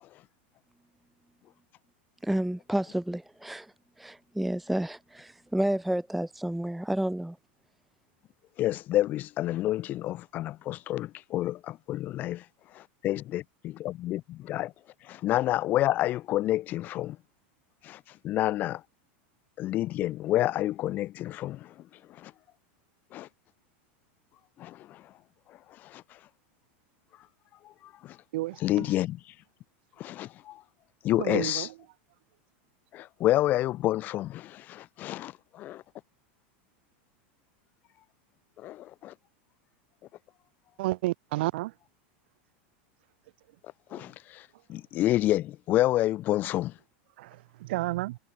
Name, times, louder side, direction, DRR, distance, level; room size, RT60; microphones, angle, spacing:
voice 1, 2.2-7.4, right 1 dB, ahead, 0.5 m, -30 dB
voice 2, 8.6-12.4 13.0-14.7 15.1-17.2 17.8-18.8 19.6-21.7 22.2-22.3 23.1-23.3 24.6-25.0 25.8-26.0 27.8-28.2 28.6-29.2 30.0-30.6 31.0-31.7 32.9-35.8 38.6-39.1 43.9-46.7, left 14 dB, 30° left, 1.0 m, -29 dB
voice 3, 31.2-31.6 40.8-41.7 47.7-48.1, right 18 dB, 65° right, 1.2 m, -29 dB
supercardioid pair, 170°, 6 cm